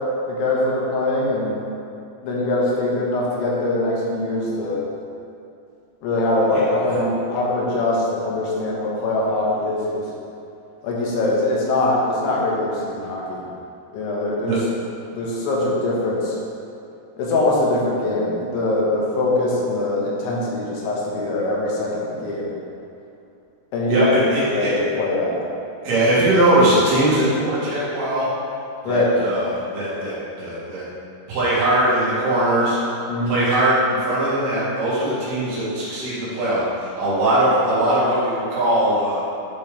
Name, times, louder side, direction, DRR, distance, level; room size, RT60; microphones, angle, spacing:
voice 1, 0.3-1.5 2.2-4.8 6.0-10.0 10.8-13.4 13.9-14.6 15.1-16.4 17.2-22.5 23.7-24.1 24.5-25.4 28.9-29.1 33.1-33.4, left 2 dB, 85° left, -5 dB, 3.6 m, -22 dB
voice 2, 23.9-24.7 25.8-28.3 28.8-30.9 31.3-32.8 33.2-39.2, right 1 dB, 65° right, -10 dB, 3.7 m, -20 dB
11.0 x 4.5 x 3.4 m, 2.6 s
omnidirectional pair, 5.2 m